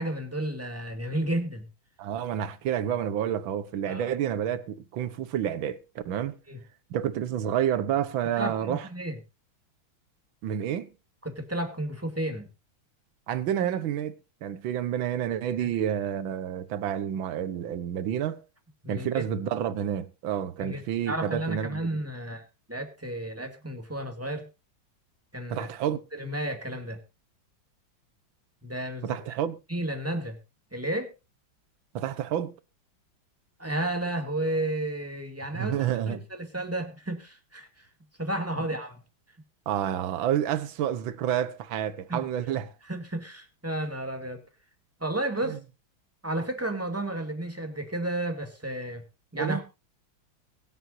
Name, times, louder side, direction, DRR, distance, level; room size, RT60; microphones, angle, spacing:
voice 1, 0.0-1.7 3.9-4.1 6.5-6.6 8.4-9.2 11.2-12.5 15.6-15.7 18.8-19.2 20.6-24.5 25.3-25.7 26.1-27.0 28.6-29.2 29.7-30.4 30.7-31.1 33.6-35.8 36.1-37.9 38.2-38.9 42.1-42.2 42.9-44.4 45.0-45.6 46.2-49.0 49.3-49.6, right 1 dB, 5° right, 2.2 m, -32 dB
voice 2, 2.0-6.4 6.9-8.9 10.4-10.9 13.3-18.4 18.9-21.9 25.5-26.0 29.0-29.6 31.9-32.5 35.5-36.2 39.7-42.7 45.5-45.6 49.4-49.6, right 10 dB, 80° right, 1.7 m, -29 dB
23.0 x 8.0 x 2.6 m
omnidirectional pair, 2.2 m